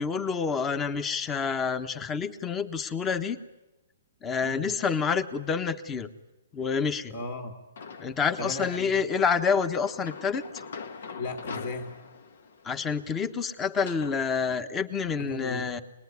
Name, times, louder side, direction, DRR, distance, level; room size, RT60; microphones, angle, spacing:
voice 1, 0.0-3.4 4.2-6.1 6.5-7.1 8.0-10.4 12.6-15.8, left 6 dB, 15° left, 12 dB, 1.2 m, -28 dB
voice 2, 4.4-4.7 7.1-7.6 8.4-9.1 11.2-12.0 15.2-15.7, left 3 dB, 50° left, 4 dB, 2.5 m, -36 dB
sound 1, 7.8-8.4 9.1-14.2, left 5 dB, 70° left, 1.8 m, -43 dB
26.5 x 20.0 x 9.6 m, 1.1 s
hypercardioid pair, 155°, 0 cm